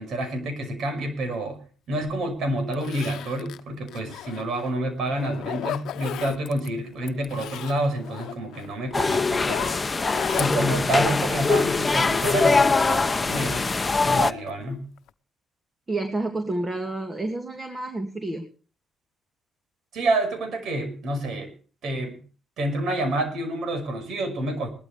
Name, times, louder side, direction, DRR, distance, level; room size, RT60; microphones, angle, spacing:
voice 1, 0.0-1.6 1.9-9.8 10.4-13.7 14.0-14.9 19.9-21.5 21.8-22.2 22.6-24.7, right 1 dB, 70° right, 7 dB, 5.7 m, -28 dB
Zipper (clothing), 2.1-2.2 2.7-4.7 5.1-6.7 7.0-12.2 12.6-13.8 14.2-14.6 15.0-15.1, left 12 dB, 80° left, 0.8 m, -36 dB
sound 1, 8.9-14.3, left 4 dB, 25° left, 0.9 m, -22 dB
voice 2, 15.9-18.5, right 2 dB, 25° right, 6 dB, 2.4 m, -29 dB
20.0 x 12.5 x 3.4 m, 0.40 s
cardioid pair, 90°, 0 cm